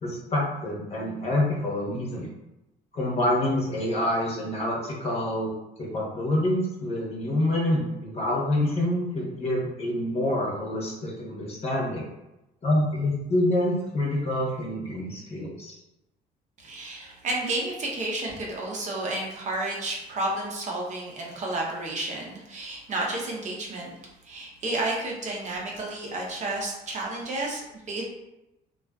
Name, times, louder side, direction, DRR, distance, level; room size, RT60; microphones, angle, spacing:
voice 1, 0.0-2.3 2.9-5.5 5.8-12.0 12.6-15.8, left 1 dB, 40° left, -3 dB, 0.8 m, -27 dB
voice 2, 16.6-23.9 24.2-28.0, right 2 dB, 45° right, -2 dB, 0.6 m, -31 dB
2.4 x 2.3 x 2.2 m, 0.92 s
cardioid pair, 110°, 17 cm